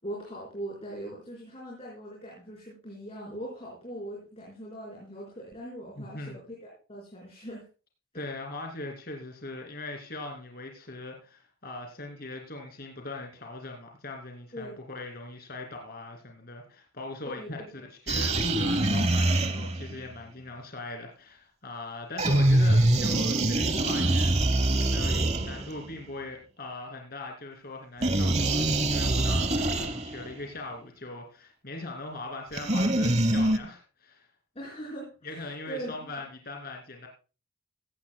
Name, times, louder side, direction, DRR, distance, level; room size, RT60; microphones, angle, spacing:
voice 1, 0.0-7.6 14.5-14.8 17.3-17.9 34.5-36.3, right 1 dB, 30° left, -3 dB, 4.5 m, -41 dB
voice 2, 6.0-6.4 8.1-17.6 18.1-24.5 24.8-34.3 35.2-37.1, left 2 dB, 45° left, 2 dB, 2.8 m, -40 dB
sound 1, 18.1-20.0 22.2-25.9 28.0-30.3 32.5-33.6, right 1 dB, 30° right, 1.0 m, -24 dB
16.0 x 15.5 x 2.2 m, 0.34 s
head